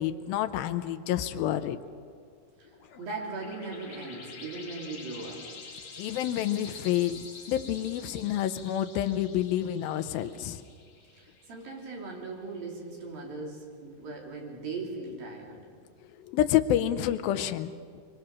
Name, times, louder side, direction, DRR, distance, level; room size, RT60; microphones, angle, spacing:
voice 1, 0.0-1.8 2.9-3.0 6.0-10.6 16.2-18.0, left 11 dB, 90° left, 9 dB, 2.6 m, -29 dB
sound 1, 2.6-11.8, left 4 dB, 40° left, 2.3 m, -47 dB
voice 2, 3.0-5.5 11.1-15.7, right 3 dB, 80° right, -2 dB, 5.2 m, -39 dB
24.5 x 23.5 x 6.2 m, 2.1 s
omnidirectional pair, 4.1 m